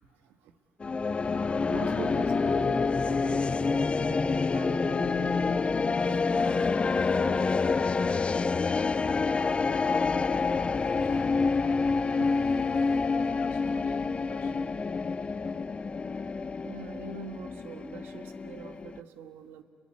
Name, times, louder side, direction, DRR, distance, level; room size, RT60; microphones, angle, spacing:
sound 1, 0.8-19.0, left 4 dB, 35° left, 0.7 m, -27 dB
voice 1, 1.7-7.4 11.1-11.2 12.2-12.3 16.6-19.6, right 7 dB, 80° right, 8 dB, 1.5 m, -43 dB
sound 2, 6.3-13.0, right 1 dB, 10° right, 3.3 m, -51 dB
voice 2, 9.9-12.4 13.1-14.7, left 8 dB, 90° left, 2 dB, 2.8 m, -51 dB
28.0 x 21.5 x 8.8 m, 2.5 s
supercardioid pair, 60°, 3 cm